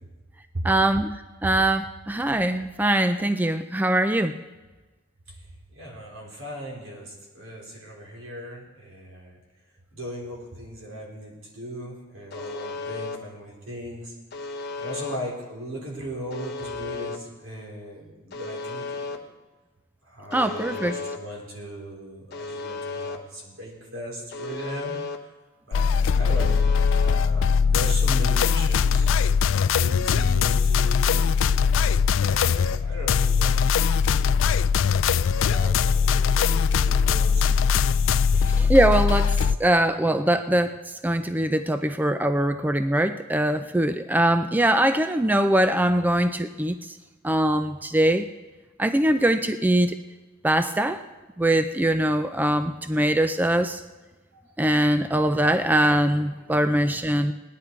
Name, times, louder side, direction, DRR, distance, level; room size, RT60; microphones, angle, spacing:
voice 1, 0.6-1.2 1.4-4.4 20.3-20.9 38.5-40.7 41.0-46.8 47.2-48.3 48.8-50.0 50.4-51.0 51.4-53.8 54.6-57.3, right 1 dB, 10° right, 9 dB, 0.4 m, -22 dB
voice 2, 5.7-9.4 9.9-14.1 14.8-19.2 20.1-25.2 25.6-26.6 27.0-29.1 29.7-31.3 32.2-34.1 35.1-38.0 38.3-38.4 54.3-54.4, equal, 80° right, -2 dB, 4.0 m, -37 dB
Alarm, 12.3-13.2 14.3-15.2 16.3-17.2 18.3-19.2 20.3-21.2 22.3-23.2 24.3-25.2 26.3-27.2, left 3 dB, 55° left, 0.9 m, -34 dB
sound 1, 25.7-39.6, left 6 dB, 70° left, 0.4 m, -21 dB
18.0 x 11.0 x 4.6 m, 1.2 s
head